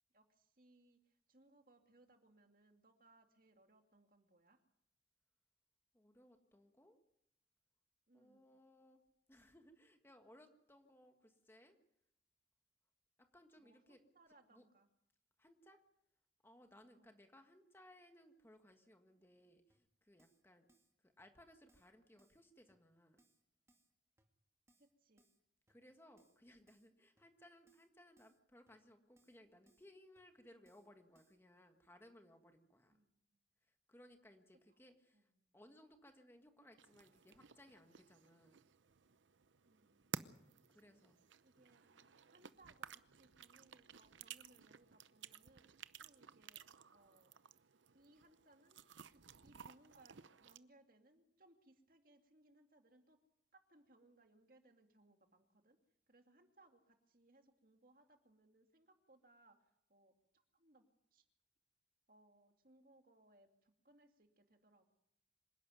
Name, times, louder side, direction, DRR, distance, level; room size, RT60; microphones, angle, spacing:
voice 1, 0.1-4.6 8.1-8.5 13.6-14.9 16.9-17.1 24.8-25.2 32.9-33.4 35.1-35.5 39.6-41.0 41.4-45.7 46.0-47.3 47.9-48.8 49.1-53.2 53.5-55.8 56.1-61.3 62.1-64.9, right 2 dB, 50° right, 5 dB, 2.3 m, -69 dB
voice 2, 5.9-7.0 8.1-9.0 9.3-11.8 13.2-14.0 14.5-14.7 15.4-15.8 16.4-20.7 21.0-23.2 25.7-33.0 33.6-38.6 40.7-41.2 42.0-42.1, left 1 dB, 10° left, 6 dB, 1.6 m, -64 dB
Keyboard (musical), 19.7-19.8 20.2-20.4 20.7-20.9 21.2-21.3 21.7-21.9 22.2-22.4 22.7-22.8 23.2-23.4 23.7-23.9 24.2-24.3 24.7-24.9 25.2-25.4 25.7-25.8 26.2-26.4 26.7-26.9 27.2-27.3 27.7-27.9 28.2-28.4 28.7-28.8 29.2-29.4 29.7-29.9 30.2-30.3 30.7-30.9 31.1-31.4, right 1 dB, 15° right, 2.3 m, -76 dB
sound 1, 36.8-50.6, right 7 dB, 90° right, 0.8 m, -55 dB
26.0 x 11.5 x 9.4 m, 0.81 s
head